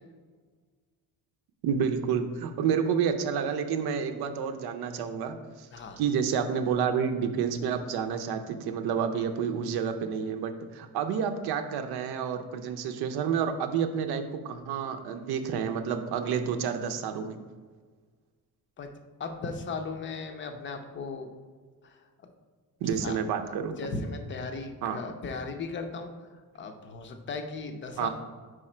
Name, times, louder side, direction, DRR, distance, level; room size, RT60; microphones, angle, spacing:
voice 1, 1.6-5.7 6.0-17.4 22.8-23.8 24.8-25.0 28.0-28.1, right 7 dB, 80° right, 7 dB, 0.6 m, -29 dB
voice 2, 19.2-21.3 21.8-22.0 22.9-23.2 23.8-26.1 26.5-28.1, left 4 dB, 30° left, 6 dB, 0.5 m, -36 dB
5.0 x 4.8 x 4.3 m, 1.5 s
cardioid pair, 170°, 38 cm